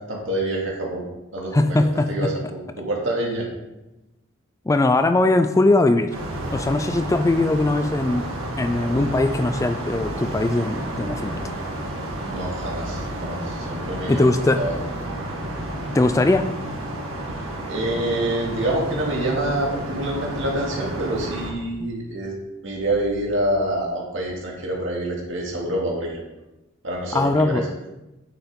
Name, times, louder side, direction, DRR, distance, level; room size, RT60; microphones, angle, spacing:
voice 1, 0.1-1.0 1.3-3.5 12.1-14.3 14.5-14.7 17.3-22.3 22.6-26.2 26.8-27.7, right 1 dB, 65° right, -2 dB, 2.2 m, -27 dB
voice 2, 1.5-2.3 4.7-6.1 6.5-8.3 8.6-11.4 14.1-14.6 15.9-16.5 21.8-21.9 27.1-27.6, left 2 dB, 15° left, 9 dB, 0.3 m, -20 dB
sound 1, 6.1-21.5, right 1 dB, 85° right, 1.9 m, -31 dB
8.9 x 7.0 x 3.7 m, 1.0 s
head